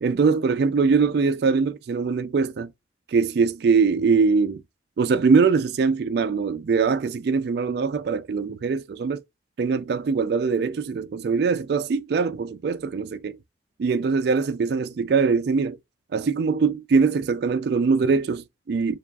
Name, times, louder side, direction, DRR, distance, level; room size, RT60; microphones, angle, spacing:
voice 1, 0.0-2.7 3.1-4.6 5.0-9.2 9.6-13.4 13.8-15.8 16.1-19.0, right 5 dB, 55° right, 0.3 m, -22 dB
6.9 x 2.4 x 2.3 m
head